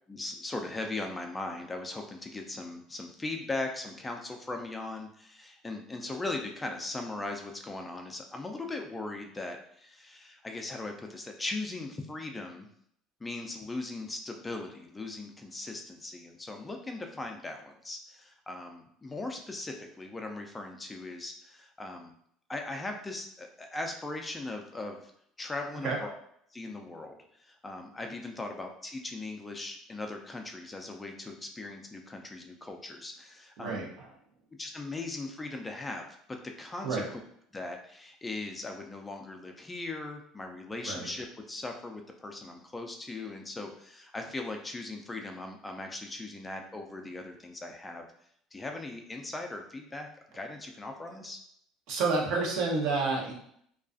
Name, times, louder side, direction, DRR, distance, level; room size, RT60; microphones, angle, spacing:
voice 1, 0.1-12.7 13.2-22.1 22.5-25.1 25.4-26.2 26.5-27.1 27.4-33.8 34.6-37.2 37.5-48.1 48.5-50.1 50.3-51.4, left 2 dB, 15° left, 3 dB, 0.4 m, -39 dB
voice 2, 51.9-53.3, right 3 dB, 65° right, -1 dB, 0.7 m, -29 dB
2.3 x 2.3 x 2.5 m, 0.68 s
supercardioid pair, 105°, 0 cm